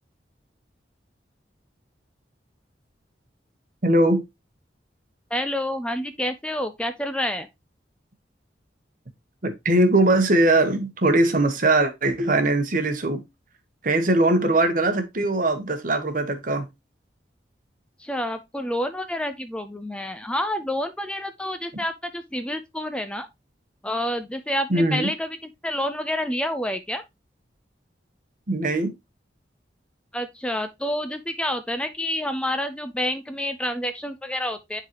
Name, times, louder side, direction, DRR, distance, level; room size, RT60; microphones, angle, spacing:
voice 1, 3.8-4.2 9.4-13.2 13.8-16.7 24.7-25.1 28.5-28.9, right 2 dB, 50° right, 1.1 m, -21 dB
voice 2, 5.3-7.5 18.0-23.3 23.8-25.4 25.6-27.0 30.1-34.8, left 1 dB, 5° left, 0.4 m, -28 dB
10.0 x 3.9 x 2.9 m
head